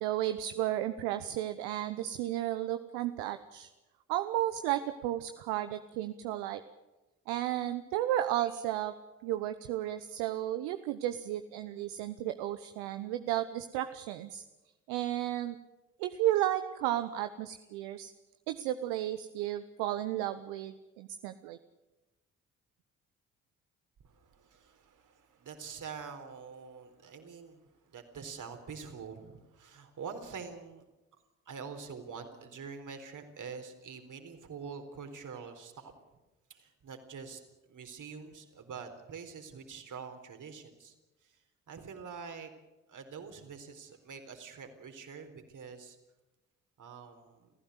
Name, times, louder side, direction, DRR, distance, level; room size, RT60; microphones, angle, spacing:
voice 1, 0.0-3.7 4.1-6.6 7.3-8.9 9.2-14.4 14.9-15.6 16.0-18.1 18.5-21.6, right 13 dB, 75° right, 10 dB, 1.0 m, -33 dB
voice 2, 24.0-30.8 31.5-35.9 36.5-40.9 41.2-42.5 42.9-46.0 46.8-47.5, right 5 dB, 50° right, 6 dB, 4.0 m, -46 dB
29.0 x 15.0 x 8.2 m, 1.1 s
hypercardioid pair, 45°, 38 cm